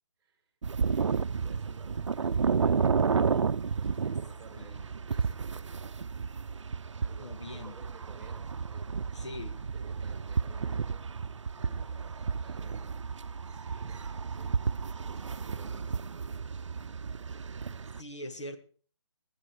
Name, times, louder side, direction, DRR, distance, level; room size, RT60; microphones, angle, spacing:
sound 1, 0.6-18.0, right 5 dB, 85° right, 0.6 m, -32 dB
voice 1, 0.9-3.0 3.6-5.8 7.0-9.3 9.7-11.2 11.5-16.0, right 4 dB, 10° right, 4 dB, 2.4 m, -55 dB
voice 2, 7.2-7.8 9.1-9.7 18.0-18.6, left 1 dB, 70° left, 7 dB, 2.2 m, -42 dB
19.0 x 9.4 x 4.8 m, 0.41 s
hypercardioid pair, 165°, 15 cm